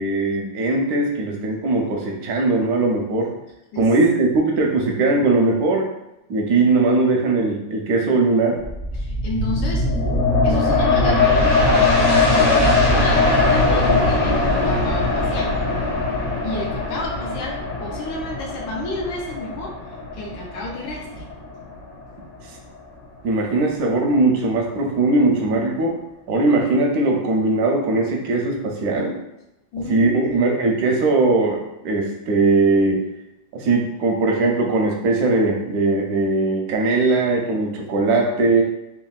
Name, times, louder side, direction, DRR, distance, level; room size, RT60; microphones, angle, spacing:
voice 1, 0.0-3.3 3.8-5.9 6.3-8.6 23.2-26.0 26.3-29.1 29.9-33.0 33.5-38.6, right 3 dB, 70° right, 0 dB, 0.9 m, -20 dB
sound 1, 8.6-21.9 22.3-22.4, left 2 dB, 55° left, 0.5 m, -20 dB
voice 2, 8.9-9.9 10.4-15.5 16.4-19.7 20.1-21.3 29.7-30.4, left 2 dB, 80° left, -2 dB, 1.4 m, -31 dB
3.5 x 2.3 x 2.3 m, 0.91 s
omnidirectional pair, 2.1 m